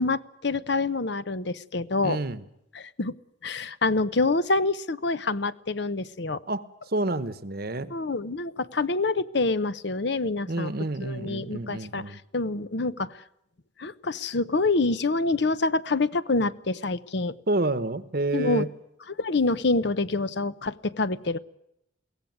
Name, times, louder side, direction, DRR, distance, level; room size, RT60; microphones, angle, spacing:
voice 1, 0.0-2.2 2.7-3.1 3.4-6.4 7.9-10.7 11.0-12.0 12.3-13.2 13.8-17.3 18.3-18.7 19.1-21.4, left 3 dB, 55° left, 16 dB, 0.8 m, -26 dB
voice 2, 2.0-2.4 6.5-7.9 10.5-12.2 17.5-18.7, right 2 dB, 50° right, 15 dB, 1.1 m, -29 dB
22.5 x 17.0 x 9.3 m, 0.82 s
head